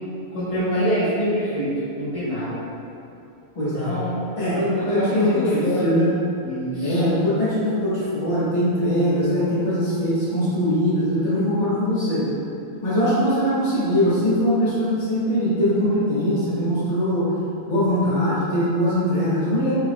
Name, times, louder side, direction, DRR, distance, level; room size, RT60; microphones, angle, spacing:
voice 1, 0.3-2.6 3.7-4.2 4.5-5.7 6.4-7.0, equal, 25° left, -13 dB, 0.9 m, -25 dB
voice 2, 3.5-3.9 4.4-4.6 4.9-6.1 6.8-12.3 12.8-17.3 17.7-19.7, equal, 50° left, -11 dB, 1.9 m, -21 dB
4.8 x 4.3 x 2.3 m, 2.8 s
omnidirectional pair, 1.6 m